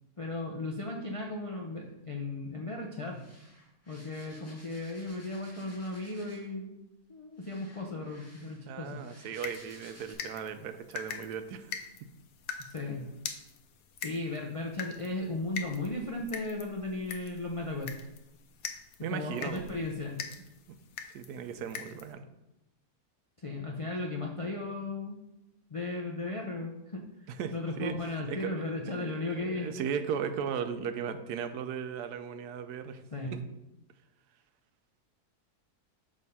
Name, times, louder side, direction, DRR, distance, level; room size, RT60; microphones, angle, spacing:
voice 1, 0.2-3.2 3.9-6.7 7.1-9.0 12.6-13.1 14.0-17.9 19.1-20.2 23.4-25.2 25.7-27.1 27.5-29.7 33.1-33.4, left 2 dB, 55° left, -1 dB, 0.3 m, -36 dB
sound 1, 3.1-6.6 7.4-10.1, equal, 10° left, 1.5 m, -56 dB
voice 2, 8.4-11.8 19.0-19.7 20.7-20.8 21.1-22.2 27.3-28.6 28.9-33.0 33.3-33.4, right 7 dB, 85° right, 10 dB, 1.1 m, -37 dB
sound 2, 9.4-22.1, left 7 dB, 85° left, 1.2 m, -44 dB
6.4 x 3.6 x 5.4 m, 0.91 s
omnidirectional pair, 1.6 m